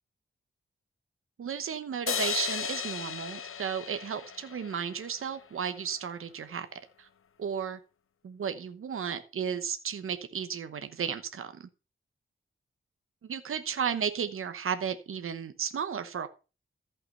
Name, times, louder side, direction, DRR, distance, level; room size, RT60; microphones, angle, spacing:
voice 1, 1.4-6.7 7.0-7.1 7.4-7.8 8.2-11.7 13.2-16.3, right 7 dB, 90° right, 9 dB, 1.0 m, -34 dB
sound 1, 2.1-5.4, left 7 dB, 85° left, 1.0 m, -35 dB
14.0 x 5.8 x 5.4 m, 0.32 s
wide cardioid pair, 80°, 21 cm